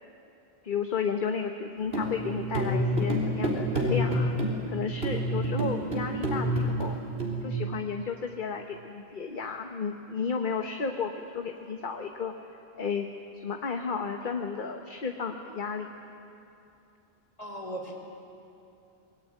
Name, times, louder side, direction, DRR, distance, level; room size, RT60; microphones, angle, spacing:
voice 1, 0.6-4.3 4.7-7.0 7.4-12.3 12.8-13.1 13.4-15.9, left 5 dB, 55° left, 4 dB, 1.3 m, -33 dB
sound 1, 1.8-7.4, equal, 75° right, 4.1 m, -28 dB
voice 2, 17.4-18.0, right 1 dB, 35° left, 2 dB, 3.6 m, -37 dB
26.0 x 19.5 x 9.4 m, 2.7 s
omnidirectional pair, 1.1 m